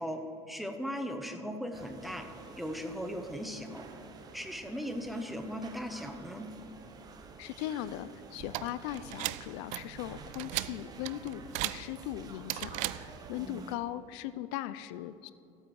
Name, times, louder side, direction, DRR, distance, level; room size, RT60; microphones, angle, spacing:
voice 1, 0.0-2.3 2.6-3.9 4.3-6.5 13.3-13.7, equal, ahead, 5 dB, 0.9 m, -38 dB
sound 1, 1.7-13.8, right 4 dB, 30° right, 1.0 m, -51 dB
voice 2, 7.4-15.3, left 13 dB, 80° left, 15 dB, 0.4 m, -39 dB
sound 2, 8.4-13.4, right 17 dB, 60° right, 0.4 m, -38 dB
14.5 x 8.7 x 4.8 m, 2.7 s
cardioid pair, 135°, 14 cm